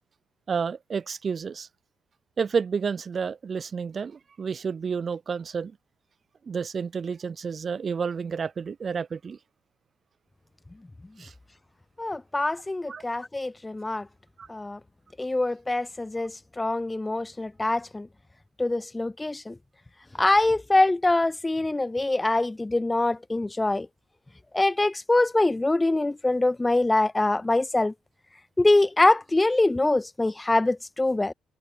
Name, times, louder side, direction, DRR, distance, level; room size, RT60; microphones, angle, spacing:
voice 1, 0.5-1.7 2.4-5.7 6.5-9.4 11.2-11.3 12.9-13.0 14.4-14.5, right 6 dB, 45° right, 1.5 m, -30 dB
voice 2, 12.0-14.0 14.5-14.8 15.2-18.1 18.6-19.5 20.2-23.9 24.5-27.9 28.6-31.3, left 2 dB, 15° left, 0.8 m, -24 dB
cardioid pair, 90°, 0 cm